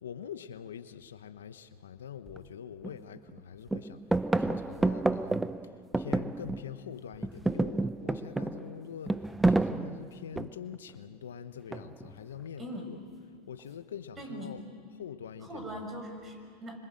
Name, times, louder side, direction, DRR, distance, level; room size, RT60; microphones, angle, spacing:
voice 1, 0.0-5.5 6.0-13.0 13.5-14.6 14.9-15.9, left 8 dB, 85° left, 11 dB, 1.1 m, -44 dB
sound 1, 2.3-2.4 2.8-3.4 3.7-6.8 7.1-10.7 11.7-12.2, right 2 dB, 10° right, 0.7 m, -30 dB
voice 2, 12.6-13.0 14.2-14.6 15.4-16.8, equal, 25° right, 5 dB, 6.1 m, -41 dB
27.0 x 26.0 x 7.7 m, 2.4 s
hypercardioid pair, 105°, 0 cm